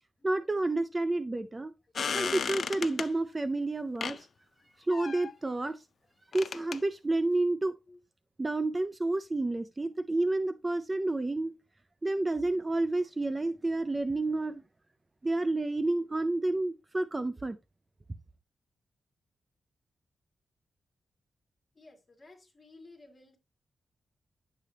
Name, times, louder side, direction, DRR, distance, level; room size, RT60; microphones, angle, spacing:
voice 1, 0.2-1.7 2.1-4.3 4.8-5.8 6.3-7.8 8.4-11.5 12.0-14.6 15.2-17.6, right 2 dB, 20° right, 0.4 m, -30 dB
sound 1, 2.0-3.1 4.0-4.2 4.9-5.3 6.3-6.8, left 6 dB, 55° left, 0.4 m, -34 dB
voice 2, 21.7-23.4, left 2 dB, 25° left, 2.2 m, -55 dB
10.0 x 6.7 x 2.7 m
wide cardioid pair, 140°, 0 cm